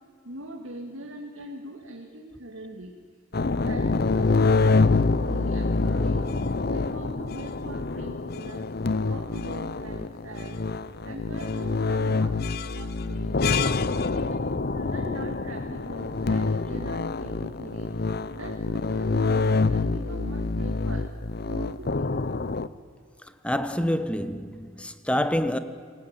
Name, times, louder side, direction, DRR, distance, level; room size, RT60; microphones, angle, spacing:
voice 1, 0.2-2.9 3.5-6.2 6.7-8.7 9.1-10.6 11.0-12.4 12.7-13.4 14.3-14.4 14.7-17.9 18.3-21.1 21.4-22.3, right 1 dB, 75° right, 2.4 m, -41 dB
sound 1, 3.3-22.7, left 3 dB, 50° left, 0.7 m, -26 dB
voice 2, 23.4-25.6, equal, 5° left, 1.0 m, -27 dB
28.0 x 18.0 x 9.0 m
head